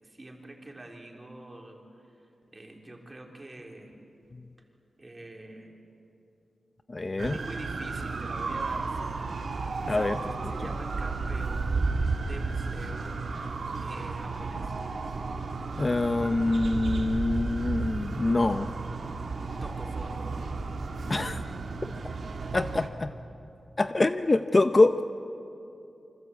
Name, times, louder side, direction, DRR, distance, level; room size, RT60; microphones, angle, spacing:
voice 1, 0.0-1.8 2.5-3.9 5.0-5.8 6.9-7.0 7.3-9.2 9.6-11.9 12.2-13.2 13.8-14.7 19.6-20.3 22.8-22.9 23.3-23.5, right 1 dB, 25° right, 1 dB, 3.6 m, -45 dB
voice 2, 6.9-7.4 9.9-10.2 15.8-18.7 21.1-21.4 22.5-23.1 23.8-24.9, left 2 dB, 30° left, 9 dB, 0.6 m, -25 dB
sound 1, 7.2-22.9, right 3 dB, 65° right, 2.2 m, -33 dB
27.5 x 25.0 x 8.4 m, 2.7 s
wide cardioid pair, 125°, 0 cm